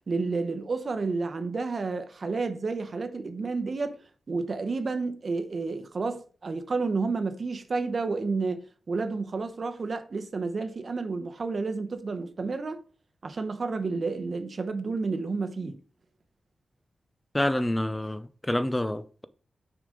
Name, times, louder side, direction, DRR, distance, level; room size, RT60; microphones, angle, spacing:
voice 1, 0.1-4.0 4.3-8.6 8.9-12.8 13.2-15.8, right 4 dB, 50° right, 0.9 m, -30 dB
voice 2, 17.3-19.3, left 1 dB, 15° left, 0.5 m, -28 dB
6.3 x 5.1 x 3.8 m
wide cardioid pair, 100°, 0 cm